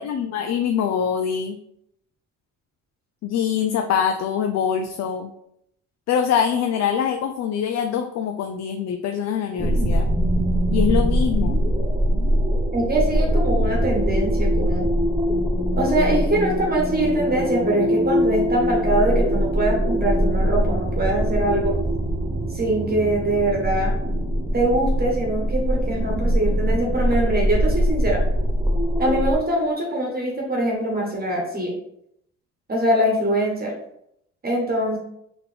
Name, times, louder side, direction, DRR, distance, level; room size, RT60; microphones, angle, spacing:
voice 1, 0.0-1.6 3.2-5.3 6.1-10.1 10.7-11.6, left 8 dB, 60° left, 5 dB, 0.4 m, -24 dB
sound 1, 9.6-29.4, equal, 15° right, 0.8 m, -22 dB
voice 2, 12.7-14.9 15.7-21.7 22.5-23.9 24.5-28.2 29.0-31.7 32.7-33.7 34.4-35.0, right 1 dB, 30° right, -2 dB, 1.2 m, -23 dB
3.8 x 2.9 x 3.4 m, 0.75 s
cardioid pair, 90°, 30 cm